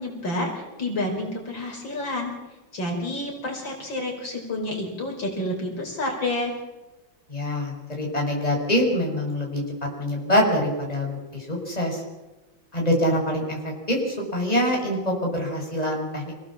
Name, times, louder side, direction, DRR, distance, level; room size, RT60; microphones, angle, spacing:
voice 1, 0.0-2.3 2.7-6.5, left 1 dB, 70° left, 1 dB, 5.4 m, -29 dB
voice 2, 7.3-9.6 10.0-12.0 12.7-16.3, equal, 20° left, -1 dB, 5.8 m, -25 dB
28.0 x 17.5 x 7.4 m, 1.1 s
omnidirectional pair, 2.2 m